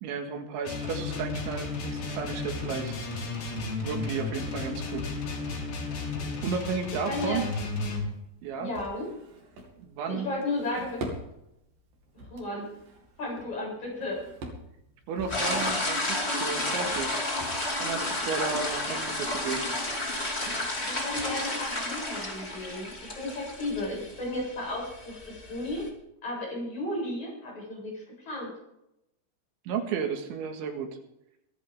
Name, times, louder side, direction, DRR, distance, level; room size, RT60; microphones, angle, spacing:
voice 1, 0.0-2.9 3.8-5.1 6.4-7.5 8.4-8.7 9.8-10.3 15.1-17.2 17.8-19.7 29.7-30.9, right 6 dB, 80° right, 4 dB, 4.1 m, -33 dB
sound 1, 0.6-8.1, left 3 dB, 80° left, 6.2 m, -33 dB
Drawer open or close, 6.6-21.8, right 2 dB, 50° right, 3.6 m, -46 dB
voice 2, 7.0-7.4 8.6-9.1 10.1-11.1 12.2-12.7 13.2-14.2 20.8-25.8 26.2-28.5, left 2 dB, 40° left, -3 dB, 9.1 m, -34 dB
sound 2, 15.3-25.9, left 2 dB, 20° left, 1.7 m, -32 dB
24.0 x 11.0 x 3.7 m, 0.84 s
omnidirectional pair, 5.3 m